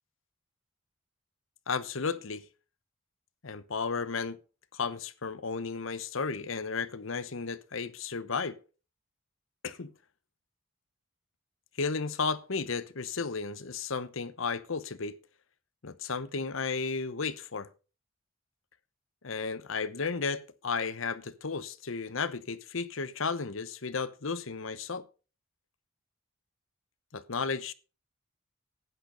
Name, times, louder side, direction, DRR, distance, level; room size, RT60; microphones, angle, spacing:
voice 1, 1.7-2.4 3.4-4.4 4.7-8.6 9.6-9.9 11.8-15.1 15.8-17.7 19.2-25.1 27.1-27.7, left 4 dB, 75° left, 0.9 m, -33 dB
10.5 x 9.1 x 5.2 m
head